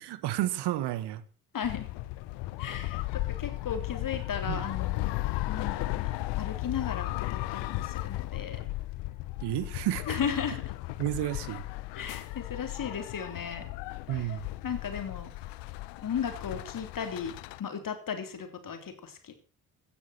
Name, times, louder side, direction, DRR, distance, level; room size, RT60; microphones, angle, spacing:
voice 1, 0.0-1.2 4.5-4.6 9.4-10.2 11.0-11.6 14.1-14.5, right 13 dB, 60° right, 1.5 m, -31 dB
voice 2, 1.5-1.9 2.6-5.1 5.5-8.6 10.1-10.6 12.0-13.7 14.1-14.3 14.6-15.3 16.0-17.3 17.6-19.3, left 7 dB, 45° left, 3.6 m, -35 dB
sound 1, 1.6-17.6, left 18 dB, 60° left, 1.0 m, -35 dB
16.5 x 10.5 x 5.9 m
figure-of-eight pair, 50°, 46 cm